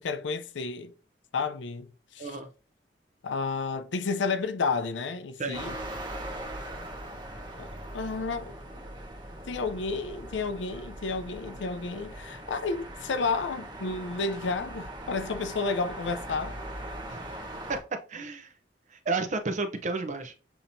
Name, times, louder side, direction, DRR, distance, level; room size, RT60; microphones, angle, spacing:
voice 1, 0.0-0.9 1.3-2.4 3.2-5.8 7.6-7.7 7.9-8.5 9.5-16.6, left 4 dB, 80° left, 0.5 m, -31 dB
sound 1, 5.5-17.8, right 1 dB, 25° right, 1.0 m, -40 dB
voice 2, 18.1-18.5 18.9-20.3, right 3 dB, 40° right, 0.6 m, -31 dB
6.9 x 2.8 x 2.6 m
head